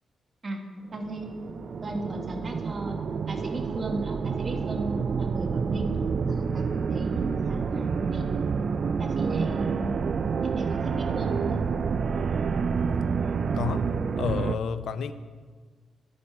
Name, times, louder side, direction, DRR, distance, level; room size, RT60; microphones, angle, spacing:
voice 1, 0.9-1.3 1.8-5.9 6.3-8.3 9.0-9.9 10.4-11.6, right 2 dB, 35° right, 3 dB, 1.3 m, -35 dB
sound 1, 1.0-14.5, right 5 dB, 50° right, 0.3 m, -28 dB
voice 2, 14.2-15.1, left 6 dB, 75° left, 12 dB, 0.5 m, -29 dB
10.5 x 8.7 x 4.2 m, 1.5 s
cardioid pair, 125°, 0 cm